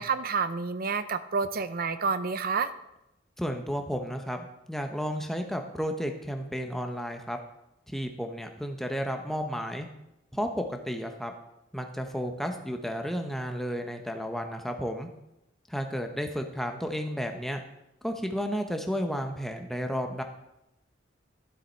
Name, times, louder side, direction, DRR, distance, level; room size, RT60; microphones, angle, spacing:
voice 1, 0.0-2.7, right 5 dB, 50° right, 12 dB, 0.6 m, -29 dB
voice 2, 3.4-7.4 7.9-9.9 10.3-11.3 11.7-15.1 15.7-17.6 18.0-20.2, equal, ahead, 4 dB, 1.0 m, -32 dB
12.0 x 7.4 x 4.6 m, 0.86 s
head